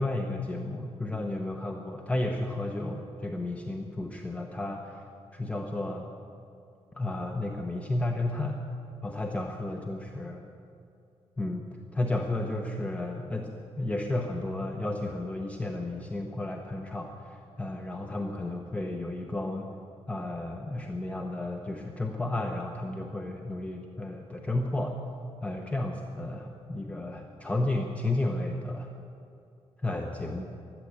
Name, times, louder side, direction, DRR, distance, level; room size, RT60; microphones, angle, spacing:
voice 1, 0.0-5.0 5.3-6.1 6.9-8.6 9.0-10.4 11.4-19.7 20.1-25.0 25.4-28.9 29.8-30.5, left 2 dB, 10° left, 2 dB, 0.8 m, -32 dB
15.0 x 12.0 x 8.1 m, 2.6 s
wide cardioid pair, 170°, 11 cm